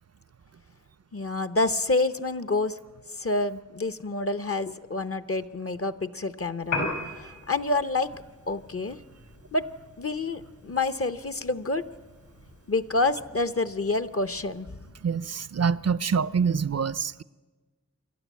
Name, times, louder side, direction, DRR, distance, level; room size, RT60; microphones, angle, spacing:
voice 1, 1.1-2.8 3.1-6.9 7.2-8.2 8.5-9.0 9.5-9.7 10.0-11.8 12.7-14.7, left 3 dB, 50° left, 0.8 m, -28 dB
Piano, 6.6-14.7, left 2 dB, 75° left, 5.4 m, -40 dB
voice 2, 15.0-17.2, right 6 dB, 55° right, 0.5 m, -26 dB
27.0 x 12.0 x 8.4 m
wide cardioid pair, 50°, 30 cm